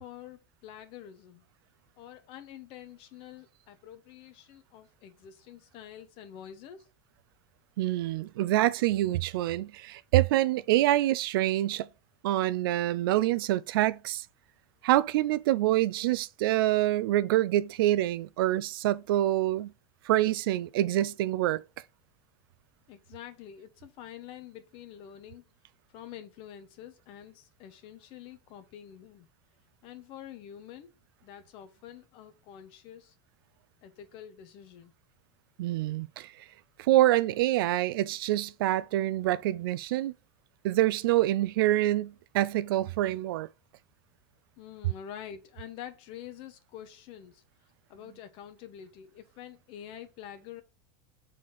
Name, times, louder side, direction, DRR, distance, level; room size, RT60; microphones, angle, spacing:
voice 1, 0.0-1.4 2.0-6.9 22.9-25.4 25.9-29.3 29.8-31.0 31.2-33.1 33.8-34.9 44.6-47.4 47.9-50.6, left 10 dB, 50° left, 1.0 m, -47 dB
voice 2, 7.8-11.9 12.2-14.3 14.8-19.7 20.0-21.6 35.6-36.3 36.8-40.1 40.6-43.5, right 14 dB, 85° right, 0.4 m, -26 dB
5.6 x 4.2 x 4.6 m
supercardioid pair, 140°, 12 cm